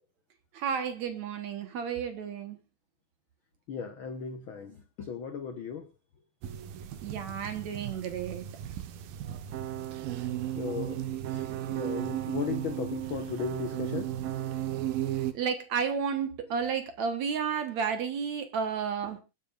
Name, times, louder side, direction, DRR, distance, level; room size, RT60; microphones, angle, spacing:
voice 1, 0.5-2.6 7.0-8.5 15.3-19.2, right 6 dB, 60° right, 8 dB, 2.3 m, -32 dB
voice 2, 3.7-5.9 10.6-11.0 11.3-14.1, left 6 dB, 75° left, 7 dB, 1.1 m, -36 dB
sound 1, 6.4-15.3, right 12 dB, 90° right, 2.9 m, -35 dB
25.5 x 9.3 x 2.5 m, 0.28 s
omnidirectional pair, 4.0 m